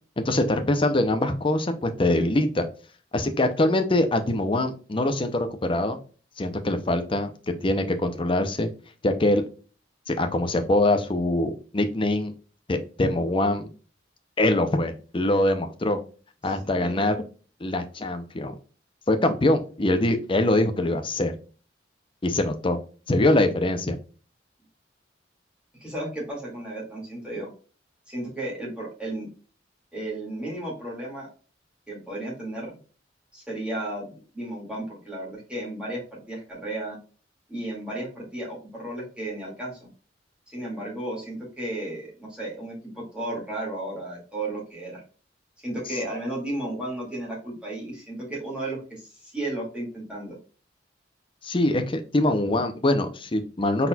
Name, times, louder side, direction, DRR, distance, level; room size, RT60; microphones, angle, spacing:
voice 1, 0.2-2.7 3.1-6.0 6.4-7.3 7.6-8.7 9.0-9.4 10.1-12.3 12.7-13.7 14.4-16.0 16.4-17.2 17.6-18.5 19.1-21.3 22.2-22.8 23.1-24.0 51.4-53.9, left 1 dB, 30° left, 7 dB, 0.6 m, -23 dB
voice 2, 16.4-17.0 25.8-27.5 28.1-29.3 29.9-31.3 31.9-32.7 33.3-37.0 37.5-39.9 40.5-45.0 45.6-50.4, right 1 dB, 5° right, -5 dB, 2.1 m, -34 dB
4.1 x 4.1 x 2.3 m, 0.38 s
head